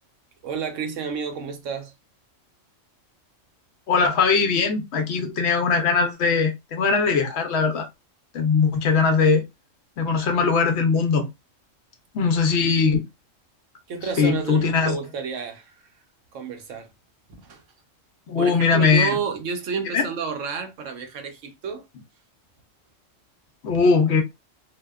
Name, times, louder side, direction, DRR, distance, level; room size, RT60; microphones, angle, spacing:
voice 1, 0.4-1.9 13.9-15.9 16.3-16.9 17.4-17.6 18.4-21.9, right 6 dB, 75° right, 1.0 m, -31 dB
voice 2, 3.9-7.9 8.3-9.4 10.0-11.3 12.1-13.0 14.2-15.0 18.3-19.2 19.9-20.0 23.6-24.2, left 5 dB, 65° left, 0.8 m, -20 dB
2.7 x 2.1 x 2.2 m
omnidirectional pair, 1.3 m